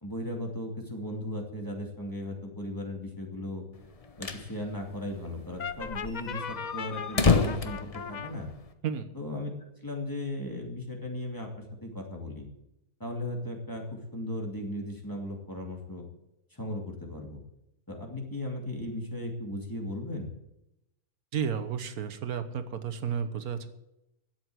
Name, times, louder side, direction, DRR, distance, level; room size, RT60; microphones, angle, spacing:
voice 1, 0.0-3.7 4.2-8.5 9.1-9.5 9.8-11.5 11.8-12.5 13.0-16.1 16.5-17.4 17.9-20.3, left 1 dB, 15° left, 0 dB, 2.4 m, -36 dB
sound 1, 3.8-4.5 4.8-4.9 5.1-5.2 5.7-8.7, left 4 dB, 30° left, 0.8 m, -28 dB
Brass instrument, 5.6-8.3, left 7 dB, 70° left, 0.4 m, -38 dB
voice 2, 21.3-23.7, right 7 dB, 85° right, 10 dB, 1.5 m, -32 dB
12.5 x 7.9 x 7.7 m, 0.87 s
omnidirectional pair, 1.5 m